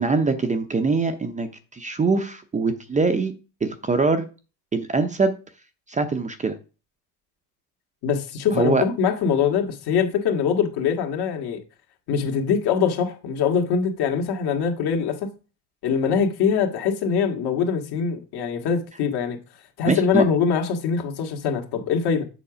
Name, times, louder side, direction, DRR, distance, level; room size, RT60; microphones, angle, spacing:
voice 1, 0.0-3.3 3.6-4.2 4.7-5.3 5.9-6.6 8.5-8.8 19.9-20.2, right 4 dB, 15° right, 0.7 m, -23 dB
voice 2, 8.0-11.6 12.1-15.3 15.8-19.4 19.8-22.2, left 6 dB, 55° left, 1.9 m, -23 dB
7.1 x 4.6 x 5.0 m
supercardioid pair, 100°, 47 cm